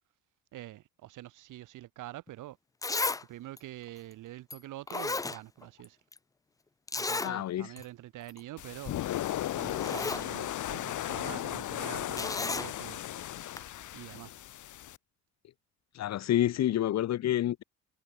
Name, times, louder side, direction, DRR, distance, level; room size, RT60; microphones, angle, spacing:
voice 1, 0.5-2.6 3.3-6.0 7.0-8.9 9.5-13.0 13.9-14.3, right 15 dB, 85° right, 5.9 m, -45 dB
Zipper (clothing), 2.3-2.4 2.8-3.2 3.6-3.7 4.5-4.6 4.9-5.9 6.1-6.2 6.9-7.3 7.8-7.9 8.2-8.4 9.3-9.4 9.7-10.3 12.2-12.7 13.6-13.7, left 3 dB, 10° left, 0.4 m, -33 dB
voice 2, 7.2-7.7 16.0-17.6, left 12 dB, 60° left, 0.8 m, -28 dB
sound 1, 8.6-15.0, left 13 dB, 80° left, 3.8 m, -36 dB
cardioid pair, 90°, 30 cm